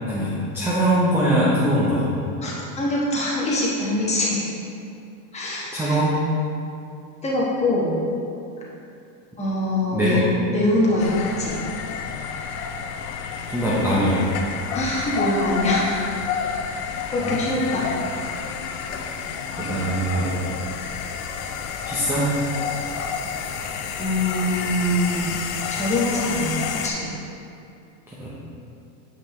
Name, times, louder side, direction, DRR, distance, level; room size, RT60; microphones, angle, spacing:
voice 1, 0.1-2.1 5.7-6.2 9.9-10.3 13.5-14.3 17.2-17.4 19.5-20.4 21.9-22.4 28.2-28.3, right 1 dB, 5° right, -8 dB, 0.7 m, -22 dB
voice 2, 2.4-4.4 5.3-6.0 7.2-8.0 9.4-10.2 10.5-11.6 14.7-16.0 16.4-16.5 16.7-17.9 24.0-25.3 25.7-27.1, left 1 dB, 15° left, -6 dB, 1.2 m, -23 dB
sound 1, 11.0-26.9, left 6 dB, 40° left, 0.4 m, -30 dB
7.7 x 5.2 x 3.1 m, 2.6 s
supercardioid pair, 145°, 44 cm